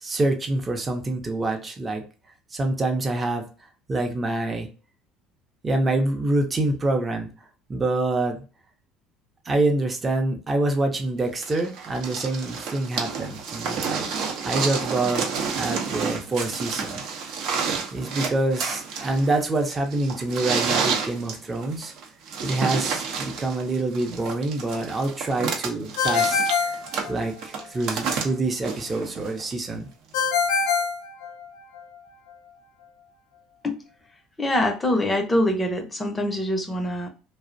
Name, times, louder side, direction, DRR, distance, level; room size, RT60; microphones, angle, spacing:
voice 1, 0.0-2.0 2.5-3.4 3.9-4.7 5.6-7.3 7.7-8.4 9.4-15.3 15.6-17.0 17.9-21.9 22.4-26.8 27.1-29.9, right 2 dB, 25° right, 3 dB, 0.6 m, -26 dB
sound 1, 11.4-29.5 30.5-30.6, right 5 dB, 65° right, 0.6 m, -30 dB
Ringtone, 26.0-27.6 30.1-31.8, left 5 dB, 75° left, 0.4 m, -24 dB
voice 2, 34.4-37.1, left 1 dB, 15° left, 5 dB, 0.6 m, -24 dB
2.4 x 2.0 x 2.5 m, 0.35 s
supercardioid pair, 85°, 0 cm